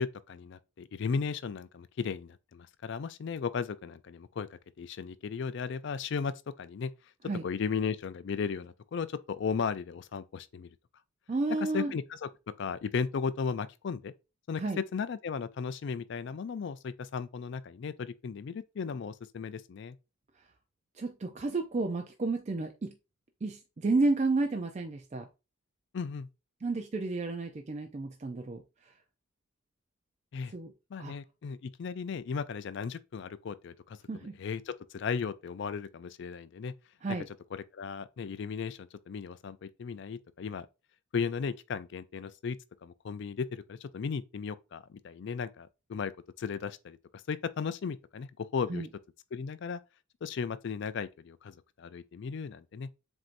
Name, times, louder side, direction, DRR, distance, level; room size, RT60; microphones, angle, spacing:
voice 1, 0.0-6.9 7.4-10.7 11.7-12.3 12.6-14.1 14.5-20.0 25.9-26.3 30.3-30.5 30.9-34.0 34.4-36.7 37.5-40.7 41.1-46.1 46.4-47.0 47.3-48.9 49.3-49.8 50.2-52.9, left 5 dB, 55° left, 0.4 m, -36 dB
voice 2, 11.3-11.9 14.6-14.8 21.0-22.9 23.4-25.3 26.6-28.6 30.5-30.7 31.0-31.1 34.1-34.4 37.0-37.3 48.7-48.9, right 3 dB, 35° right, 0.4 m, -31 dB
7.4 x 2.7 x 2.5 m
head